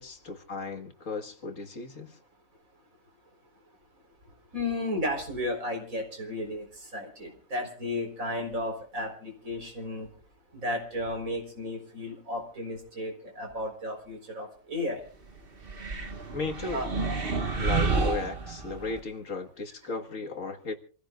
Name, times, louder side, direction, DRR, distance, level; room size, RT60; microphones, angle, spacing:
voice 1, 0.0-2.2 16.3-16.8 17.6-20.7, left 3 dB, 60° left, 4 dB, 2.0 m, -35 dB
voice 2, 4.5-10.1 10.5-15.0 16.7-16.9, left 1 dB, 65° right, 2 dB, 4.7 m, -33 dB
sound 1, 15.6-19.0, right 4 dB, 40° right, 1.8 m, -30 dB
27.5 x 15.5 x 2.4 m, 0.42 s
omnidirectional pair, 1.6 m